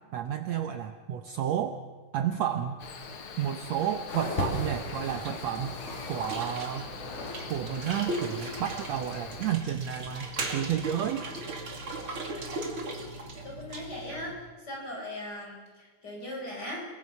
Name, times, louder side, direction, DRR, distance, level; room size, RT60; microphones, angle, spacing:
voice 1, 0.1-1.8 2.1-2.8 3.4-5.8 6.1-6.9 7.5-11.3, right 10 dB, 65° right, 7 dB, 1.9 m, -31 dB
Cricket, 2.8-9.6, left 5 dB, 50° left, 2.0 m, -43 dB
sound 1, 4.1-7.5 7.8-8.7 9.4-9.5, left 2 dB, 70° left, 4.8 m, -37 dB
sound 2, 5.1-14.3, right 2 dB, 40° right, 3.0 m, -38 dB
voice 2, 13.4-16.8, left 1 dB, 30° left, -1 dB, 5.5 m, -39 dB
30.0 x 20.5 x 5.5 m, 1.4 s
omnidirectional pair, 3.7 m